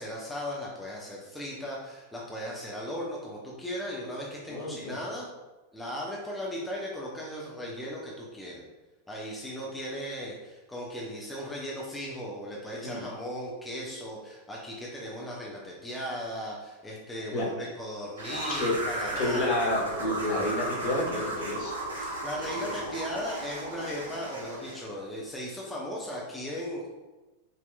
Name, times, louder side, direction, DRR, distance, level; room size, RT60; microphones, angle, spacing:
voice 1, 0.0-5.3 5.7-8.6 9.1-19.7 22.0-26.9, equal, 10° left, -4 dB, 0.7 m, -37 dB
voice 2, 4.5-5.0 12.8-13.0 17.3-17.4 18.5-18.7 19.2-21.7 22.6-22.7, left 1 dB, 45° left, -2 dB, 1.2 m, -30 dB
sound 1, 18.2-24.8, right 1 dB, 75° right, 0.9 m, -35 dB
5.2 x 2.9 x 2.2 m, 1.1 s
figure-of-eight pair, 90°, 0 cm